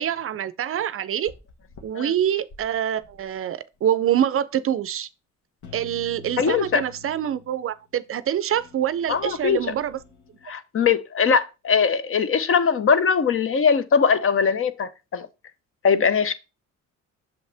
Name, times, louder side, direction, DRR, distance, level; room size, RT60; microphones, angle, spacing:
voice 1, 0.0-1.3 1.8-5.1 5.7-10.0, right 10 dB, 45° right, 0.5 m, -25 dB
sound 1, 1.3-1.8 2.4-3.4 3.7-3.8 5.6-7.8 8.5-10.5, left 6 dB, 70° left, 1.4 m, -47 dB
voice 2, 6.4-6.8 9.1-9.6 10.4-15.3 15.8-16.3, left 6 dB, 45° left, 0.7 m, -21 dB
6.3 x 5.4 x 3.4 m
cardioid pair, 90°, 30 cm